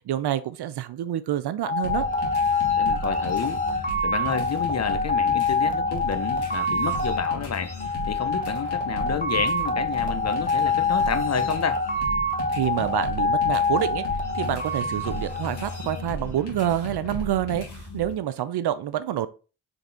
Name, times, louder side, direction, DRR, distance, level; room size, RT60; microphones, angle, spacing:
voice 1, 0.1-2.1 12.5-14.0 14.3-17.7 17.9-19.3, right 11 dB, 65° right, 0.6 m, -27 dB
sound 1, 1.6-16.1, left 3 dB, 20° left, 1.0 m, -26 dB
sound 2, 1.8-18.1, left 1 dB, 65° left, 2.0 m, -36 dB
voice 2, 2.8-11.8, left 7 dB, 40° left, 0.6 m, -30 dB
4.0 x 3.4 x 3.8 m
supercardioid pair, 45°, 42 cm